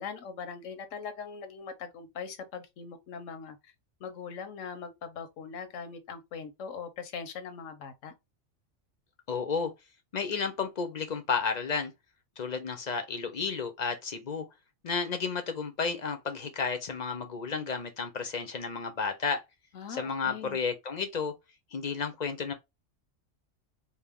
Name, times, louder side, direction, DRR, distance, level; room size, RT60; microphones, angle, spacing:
voice 1, 0.0-3.7 4.0-8.1 19.7-20.6, left 6 dB, 85° left, 1.1 m, -41 dB
voice 2, 9.3-9.7 10.1-11.9 12.4-14.5 14.8-19.4 19.9-21.3 21.7-22.5, left 5 dB, 50° left, 0.5 m, -32 dB
4.3 x 2.0 x 3.4 m
omnidirectional pair, 1.3 m